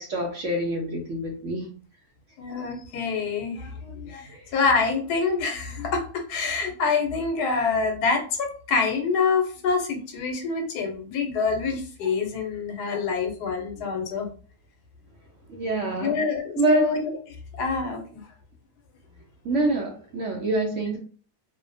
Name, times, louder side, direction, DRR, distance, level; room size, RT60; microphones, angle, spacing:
voice 1, 0.0-1.7 15.5-16.2 16.6-16.8 19.4-21.0, right 2 dB, 65° right, 1 dB, 0.8 m, -26 dB
voice 2, 2.4-14.3 15.9-17.1 17.5-18.2, left 4 dB, 90° left, 4 dB, 1.2 m, -26 dB
2.6 x 2.1 x 2.5 m, 0.41 s
omnidirectional pair, 1.7 m